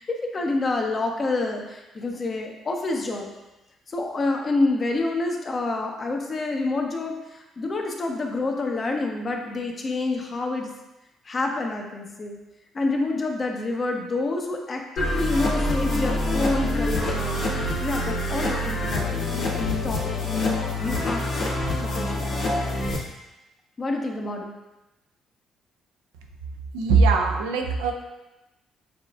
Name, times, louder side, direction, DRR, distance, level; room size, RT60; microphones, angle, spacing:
voice 1, 0.0-3.3 3.9-10.7 11.2-12.4 12.7-19.1 19.5-20.0 20.8-21.2 21.8-22.3 23.8-24.5, left 2 dB, 40° left, 2 dB, 0.7 m, -28 dB
sound 1, 15.0-23.0, left 1 dB, 70° left, 1.4 m, -26 dB
voice 2, 26.7-27.9, right 4 dB, 90° right, 3 dB, 0.4 m, -20 dB
6.7 x 2.4 x 2.4 m, 1.0 s
supercardioid pair, 60°, 0 cm